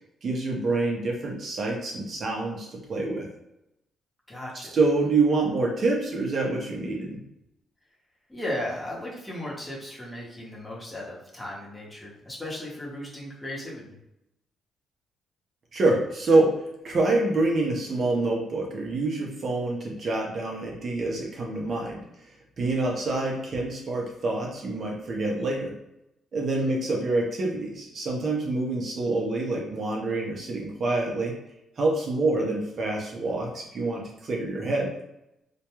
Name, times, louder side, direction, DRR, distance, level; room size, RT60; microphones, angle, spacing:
voice 1, 0.2-3.3 4.7-7.2 15.7-22.0 22.6-25.7 26.3-31.3 31.8-34.9, right 2 dB, 50° right, -1 dB, 0.6 m, -26 dB
voice 2, 4.3-4.7 8.3-14.0 26.5-26.7, left 1 dB, 10° left, -5 dB, 0.9 m, -36 dB
2.2 x 2.2 x 2.9 m, 0.86 s
cardioid pair, 90°, 0 cm